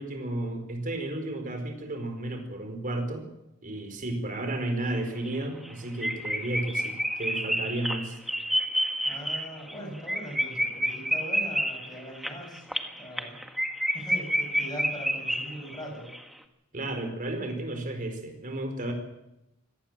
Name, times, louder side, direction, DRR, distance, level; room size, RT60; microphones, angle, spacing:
voice 1, 0.0-3.3 3.6-8.2 16.7-18.9, right 1 dB, 40° right, 5 dB, 4.6 m, -33 dB
sound 1, 4.9-5.0 5.3-5.4 5.6-5.7 6.0-15.8 16.1-16.2, equal, ahead, 1.7 m, -29 dB
voice 2, 9.0-12.7 13.0-13.4 13.9-16.1, right 1 dB, 20° left, 2 dB, 7.4 m, -40 dB
24.0 x 18.0 x 7.5 m, 0.89 s
head